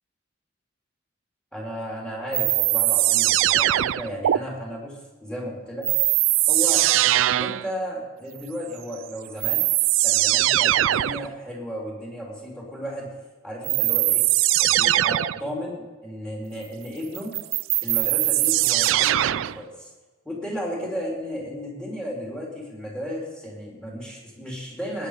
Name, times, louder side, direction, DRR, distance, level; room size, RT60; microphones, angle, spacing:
voice 1, 1.5-5.0 5.2-5.9 6.5-6.8 7.4-9.6 10.0-13.1 13.4-14.2 14.6-17.3 17.8-19.9 20.3-25.1, equal, 5° left, -3 dB, 3.6 m, -34 dB
sound 1, 2.3-4.4 5.8-7.7 8.9-9.0 9.4-11.3 13.6-15.4 17.1-19.6, right 15 dB, 70° right, 0.3 m, -21 dB
19.5 x 9.8 x 5.0 m, 1.3 s
head